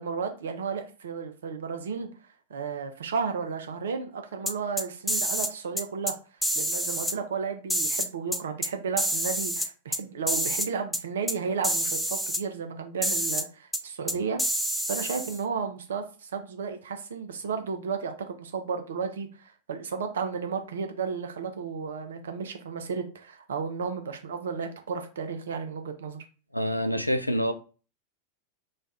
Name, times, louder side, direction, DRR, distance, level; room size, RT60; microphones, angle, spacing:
voice 1, 0.0-2.1 2.5-6.2 6.5-14.4 14.9-26.2, right 5 dB, 65° right, 0.6 m, -33 dB
sound 1, 4.5-5.5 5.8-6.1 6.4-7.1 7.7-8.7 9.0-10.0 10.3-10.7 10.9-11.0 11.3-11.4 11.6-12.4 13.0-13.4 13.7-13.8 14.1-15.4, equal, 5° left, 0.3 m, -28 dB
voice 2, 26.5-27.5, equal, 90° left, 0.3 m, -27 dB
3.2 x 2.3 x 4.0 m
figure-of-eight pair, 90°, 0 cm